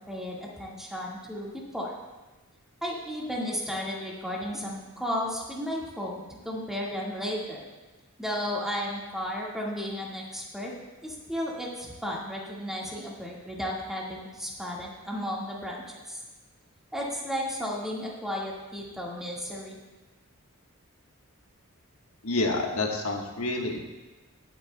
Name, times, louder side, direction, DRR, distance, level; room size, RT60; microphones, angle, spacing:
voice 1, 0.0-2.0 2.8-7.7 8.2-10.7 11.0-16.2 16.9-19.8, equal, ahead, -4 dB, 1.7 m, -34 dB
voice 2, 22.2-23.8, left 2 dB, 70° left, 1 dB, 1.4 m, -28 dB
20.0 x 8.2 x 2.2 m, 1.2 s
head